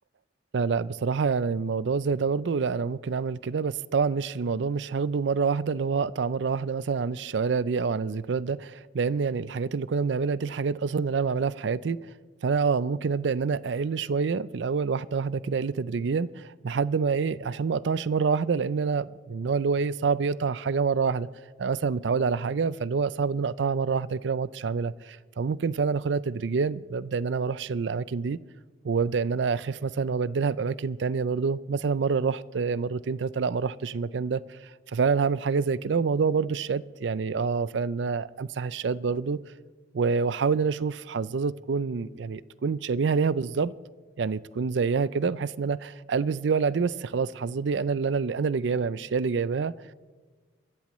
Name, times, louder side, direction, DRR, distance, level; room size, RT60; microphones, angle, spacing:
voice 1, 0.5-12.0 12.4-21.3 21.6-28.4 28.8-34.6 34.9-39.4 39.9-43.7 44.2-49.7, right 5 dB, 80° right, 0.4 m, -27 dB
28.0 x 14.5 x 3.1 m
head